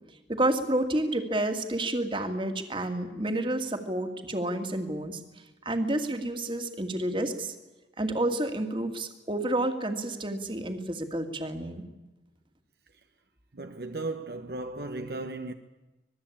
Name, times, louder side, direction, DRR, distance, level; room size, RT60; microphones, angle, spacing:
voice 1, 0.3-5.2 5.7-7.6 8.0-11.8, right 1 dB, 30° right, 2.2 m, -30 dB
voice 2, 13.5-15.5, right 2 dB, 60° right, 1.1 m, -36 dB
25.5 x 20.5 x 8.7 m
head